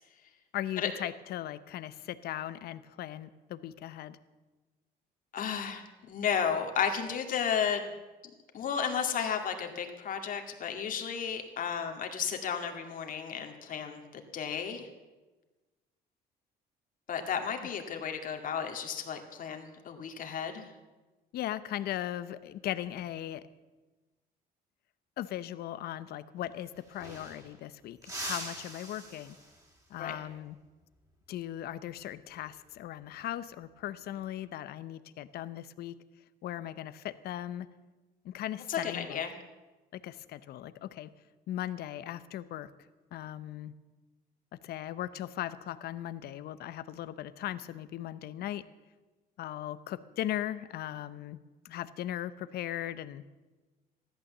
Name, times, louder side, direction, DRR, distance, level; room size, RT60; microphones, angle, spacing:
voice 1, 0.5-4.2 21.3-23.4 25.2-29.4 29.9-30.6 31.3-36.0 36.4-37.7 38.2-39.2 39.9-41.1 41.5-42.7 43.1-43.7 44.6-48.6 49.4-51.4 51.6-53.2, left 12 dB, 70° left, 14 dB, 0.8 m, -38 dB
voice 2, 5.3-7.8 8.5-14.9 17.1-20.7 30.0-30.1 38.7-39.3, left 7 dB, 55° left, 4 dB, 2.1 m, -33 dB
sound 1, 26.4-26.5 26.7-27.6 28.0-29.8 32.3-32.6 34.0-34.5, right 1 dB, 20° right, 3.4 m, -43 dB
14.5 x 11.5 x 7.3 m, 1.2 s
cardioid pair, 110°, 17 cm